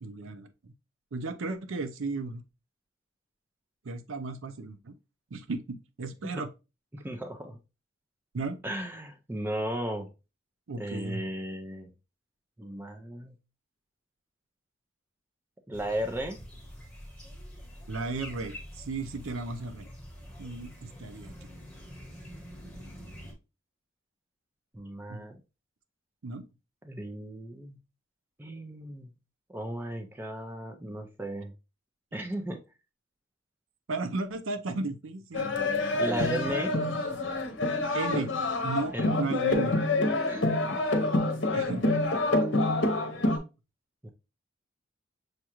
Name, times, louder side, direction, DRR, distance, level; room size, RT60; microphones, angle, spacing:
voice 1, 0.0-0.7 1.1-2.4 3.8-4.9 5.3-6.5 8.3-8.6 10.7-11.2 17.9-19.9 20.4-21.5 25.1-25.2 26.2-26.4 33.9-35.5 37.9-38.3 38.6-39.8 41.5-41.9, right 3 dB, 80° right, 0.5 m, -35 dB
voice 2, 6.9-7.6 8.6-10.1 10.8-11.9 12.6-13.3 15.7-16.4 24.7-25.4 26.8-27.8 28.4-29.1 29.5-31.5 32.1-32.6 36.0-36.7 38.9-39.1 40.3-40.5 44.0-44.1, right 1 dB, 10° right, 0.5 m, -35 dB
sound 1, 15.7-23.3, equal, 5° left, 1.1 m, -46 dB
sound 2, 35.3-43.4, left 2 dB, 65° left, 0.8 m, -27 dB
6.4 x 2.4 x 2.9 m
head